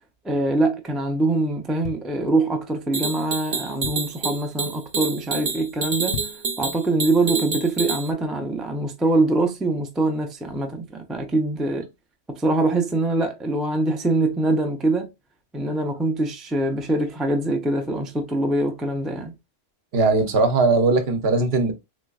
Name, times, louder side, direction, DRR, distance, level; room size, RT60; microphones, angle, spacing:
voice 1, 0.2-6.2 6.6-11.9 12.3-15.1 15.5-19.3, right 2 dB, ahead, 0.4 m, -23 dB
sound 1, 1.5-2.8 3.3-3.4 3.6-4.3 4.8-5.0 5.3-5.4 5.9-6.6 7.0-7.1, left 9 dB, 65° left, 0.7 m, -37 dB
sound 2, 2.9-8.1, right 4 dB, 40° right, 0.7 m, -28 dB
voice 2, 19.9-21.7, right 3 dB, 65° right, 1.0 m, -19 dB
3.8 x 3.1 x 2.3 m
omnidirectional pair, 1.1 m